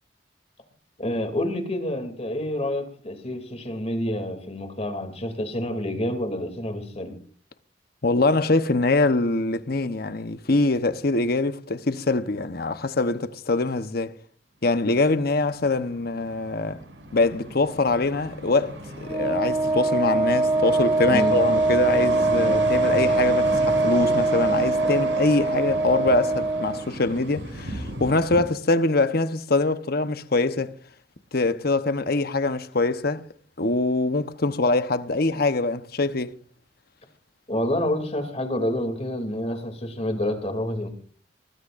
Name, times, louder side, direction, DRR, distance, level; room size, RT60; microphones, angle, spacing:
voice 1, 1.0-7.2 21.1-21.4 37.5-40.9, left 1 dB, 35° left, 2.9 m, -28 dB
voice 2, 8.0-14.1 14.6-16.8 17.1-30.7 31.3-33.2 33.6-36.3, left 3 dB, 55° left, 1.1 m, -24 dB
sound 1, 15.2-28.4, right 1 dB, 80° right, 6.1 m, -34 dB
Wind instrument woodwind instrument, 19.1-26.9, right 2 dB, 25° right, 1.0 m, -22 dB
24.5 x 20.0 x 2.6 m
head